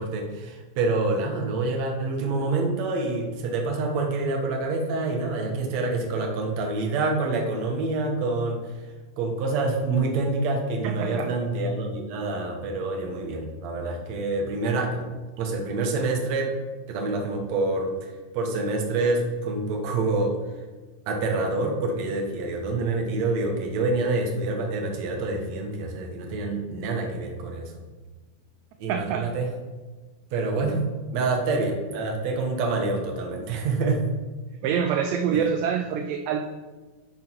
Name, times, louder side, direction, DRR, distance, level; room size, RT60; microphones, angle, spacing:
voice 1, 0.0-8.9 9.2-15.0 15.4-16.5 16.9-20.4 21.1-27.7 28.8-29.5 30.3-34.1 35.3-35.5, right 3 dB, 60° right, 2 dB, 2.0 m, -27 dB
voice 2, 10.8-11.3 28.9-29.3 34.6-36.5, right 7 dB, 90° right, 6 dB, 1.9 m, -26 dB
9.4 x 8.1 x 4.6 m, 1.3 s
omnidirectional pair, 4.5 m